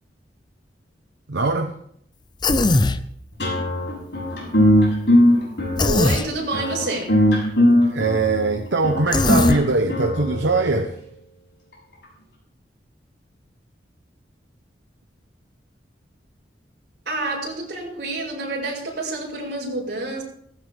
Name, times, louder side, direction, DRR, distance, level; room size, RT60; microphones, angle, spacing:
voice 1, 1.3-1.8 7.9-11.0, right 3 dB, 85° right, 1.0 m, -21 dB
Human voice, 2.4-3.0 5.8-6.3 9.1-9.6, left 2 dB, 25° left, 0.6 m, -19 dB
sound 1, 3.4-10.8, left 1 dB, 70° left, 7.3 m, -19 dB
voice 2, 5.8-7.1 17.1-20.2, right 2 dB, 65° right, 5.7 m, -28 dB
18.0 x 15.5 x 3.5 m
head